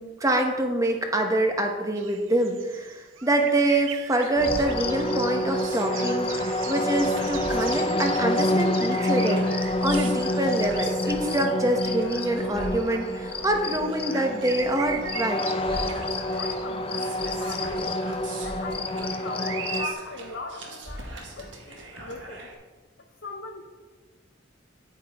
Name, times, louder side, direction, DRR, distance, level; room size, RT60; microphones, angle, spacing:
voice 1, 0.0-15.6, right 1 dB, 15° right, 4 dB, 1.1 m, -25 dB
sound 1, 2.0-13.4 13.7-17.8 18.4-19.1 19.3-19.9, right 8 dB, 80° right, 0.7 m, -40 dB
sound 2, 4.3-22.5, right 1 dB, 65° right, 1.7 m, -41 dB
sound 3, 4.4-19.9, left 1 dB, 30° left, 0.6 m, -28 dB
voice 2, 16.4-22.5 23.2-23.6, left 3 dB, 60° left, 2 dB, 0.8 m, -40 dB
9.8 x 9.3 x 3.5 m, 1.3 s
head